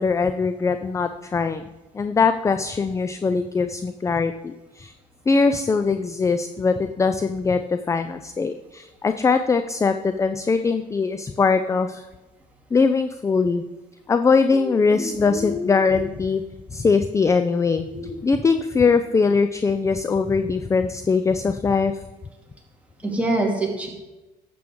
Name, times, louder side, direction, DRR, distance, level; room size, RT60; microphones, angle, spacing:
voice 1, 0.0-1.6 1.9-4.9 5.3-12.1 12.7-13.6 14.1-16.4 16.7-17.9 18.2-22.0, left 4 dB, 20° left, 9 dB, 0.4 m, -21 dB
voice 2, 14.9-15.4 15.9-16.0 17.9-18.2 23.0-23.9, right 2 dB, 10° right, -1 dB, 2.4 m, -26 dB
12.0 x 7.6 x 3.7 m, 1.1 s
cardioid pair, 110°, 17 cm